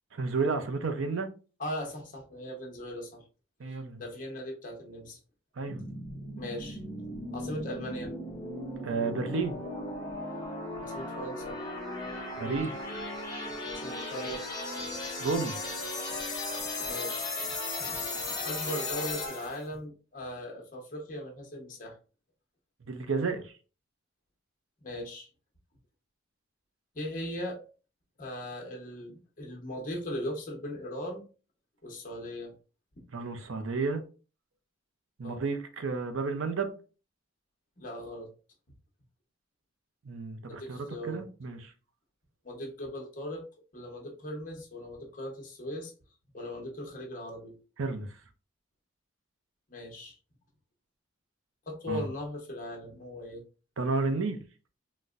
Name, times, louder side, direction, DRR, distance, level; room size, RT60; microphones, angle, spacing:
voice 1, 0.1-1.3 3.6-4.0 5.6-5.8 8.8-9.6 12.4-12.8 15.2-15.6 22.9-23.5 33.1-34.0 35.2-36.7 40.0-41.7 47.8-48.2 51.9-52.0 53.8-54.4, right 4 dB, 80° right, 0.6 m, -31 dB
voice 2, 1.6-3.2 4.0-5.2 6.4-6.8 7.3-8.2 10.8-11.6 13.7-14.4 16.9-17.3 17.9-18.0 18.4-22.0 24.8-25.3 26.9-27.6 28.2-31.2 31.8-32.5 35.2-35.4 37.8-38.3 40.5-41.2 42.4-43.5 43.7-45.9 46.3-47.6 49.7-50.2 51.7-53.4, left 1 dB, 40° left, 1.0 m, -39 dB
sound 1, 5.6-19.7, left 2 dB, 20° left, 0.7 m, -36 dB
4.0 x 2.1 x 2.4 m
head